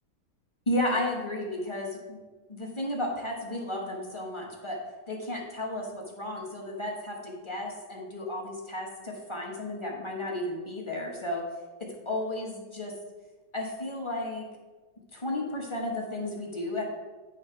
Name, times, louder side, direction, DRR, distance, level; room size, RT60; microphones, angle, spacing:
voice 1, 0.7-2.2 2.5-4.8 5.1-11.4 12.0-12.9 13.5-14.4 15.1-16.9, left 1 dB, 20° left, -1 dB, 0.9 m, -33 dB
9.5 x 3.2 x 5.5 m, 1.3 s
omnidirectional pair, 2.0 m